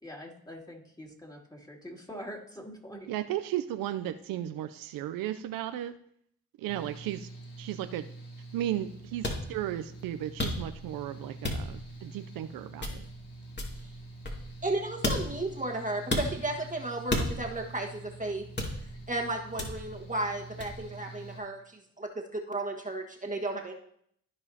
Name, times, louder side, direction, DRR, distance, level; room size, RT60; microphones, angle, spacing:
voice 1, 0.0-3.1, equal, 10° left, -1 dB, 2.7 m, -44 dB
voice 2, 3.1-5.9 6.6-7.3 7.6-8.1 8.5-13.0, right 12 dB, 80° right, 10 dB, 0.5 m, -35 dB
Mechanical fan, 6.7-21.4, right 2 dB, 75° left, 2.8 m, -46 dB
sound 1, 9.2-9.4 10.4-10.9 11.4-11.9 12.8-13.2 13.6-14.7 15.0-15.5 16.1-16.3 17.1-17.6 18.6-19.0 19.6-20.0 20.6-20.8, left 1 dB, 30° left, 2.3 m, -32 dB
voice 3, 14.6-18.5 19.1-23.7, right 2 dB, 20° right, 2 dB, 1.5 m, -34 dB
14.5 x 4.8 x 2.8 m, 0.68 s
supercardioid pair, 50°, 34 cm